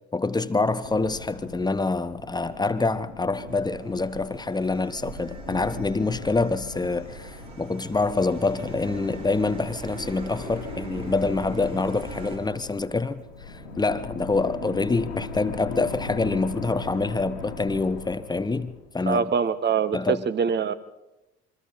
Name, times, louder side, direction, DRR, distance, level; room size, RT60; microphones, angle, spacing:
voice 1, 0.1-19.3 19.9-20.3, left 3 dB, 15° left, 1.1 m, -26 dB
sound 1, 0.8-19.3, left 4 dB, 80° left, 2.9 m, -40 dB
sound 2, 3.5-12.4, right 4 dB, 70° right, 5.9 m, -43 dB
voice 2, 19.1-20.7, right 6 dB, 35° right, 1.5 m, -24 dB
27.5 x 24.0 x 4.1 m
figure-of-eight pair, 55°, 32 cm